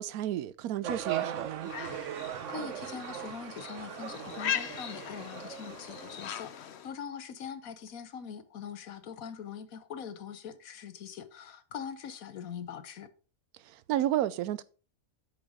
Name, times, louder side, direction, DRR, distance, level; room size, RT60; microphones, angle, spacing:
voice 1, 0.0-1.7 13.6-14.6, right 12 dB, 90° right, 1.1 m, -32 dB
sound 1, 0.8-6.3, right 10 dB, 60° right, 1.0 m, -39 dB
sound 2, 1.6-6.9, left 9 dB, 55° left, 0.9 m, -39 dB
voice 2, 2.1-13.1, left 7 dB, 70° left, 1.3 m, -43 dB
8.5 x 6.3 x 5.0 m
omnidirectional pair, 1.5 m